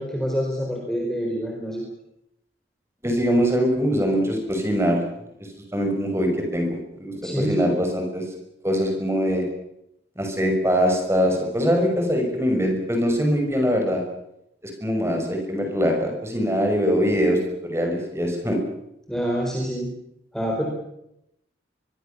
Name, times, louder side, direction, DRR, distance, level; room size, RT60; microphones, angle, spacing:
voice 1, 0.0-1.8 7.1-7.6 19.1-19.9 20.3-20.7, equal, 5° left, -1 dB, 4.6 m, -26 dB
voice 2, 3.0-5.0 5.7-6.7 7.0-8.2 8.6-9.4 10.2-14.0 14.6-18.6, equal, 15° right, 3 dB, 6.1 m, -22 dB
23.5 x 23.0 x 7.1 m, 0.81 s
head